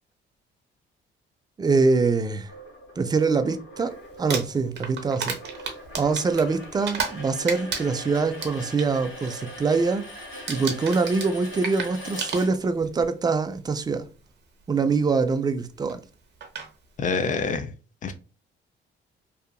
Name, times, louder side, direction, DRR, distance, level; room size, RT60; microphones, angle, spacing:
voice 1, 1.6-2.5 3.0-3.9 4.2-5.3 6.0-10.0 10.5-14.1 14.7-16.0, right 4 dB, 20° right, 0.4 m, -24 dB
sound 1, 2.5-13.0, equal, 90° left, 1.4 m, -41 dB
Crumpling crinkling, 4.1-7.2 7.5-8.9 9.3-9.6 9.8-10.2 10.5-12.9 13.8-13.9 15.9-16.0 16.4-16.7, right 6 dB, 60° right, 0.7 m, -32 dB
voice 2, 17.0-17.7 18.0-18.1, left 5 dB, 40° left, 0.5 m, -26 dB
2.7 x 2.4 x 2.2 m
cardioid pair, 90°, 20 cm